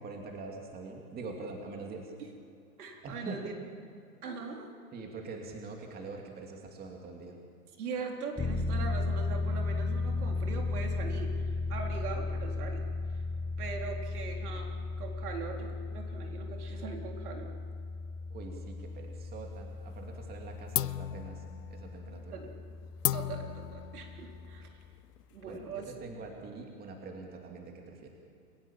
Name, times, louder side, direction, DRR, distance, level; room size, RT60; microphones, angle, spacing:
voice 1, 0.0-2.1 3.0-3.4 4.9-7.4 18.3-21.4 21.7-22.4 25.4-28.1, right 3 dB, 20° right, 1 dB, 2.8 m, -44 dB
voice 2, 2.8-3.5 4.2-4.7 7.8-13.2 13.6-17.6 22.3-22.6 23.1-24.7 25.3-25.9, right 5 dB, 70° right, 1 dB, 4.1 m, -41 dB
sound 1, 8.4-24.7, left 3 dB, 10° left, 1.8 m, -36 dB
sound 2, 18.8-19.7 20.0-20.4 20.7-25.9, left 12 dB, 85° left, 0.7 m, -37 dB
29.5 x 16.0 x 7.3 m, 2.4 s
hypercardioid pair, 130°, 47 cm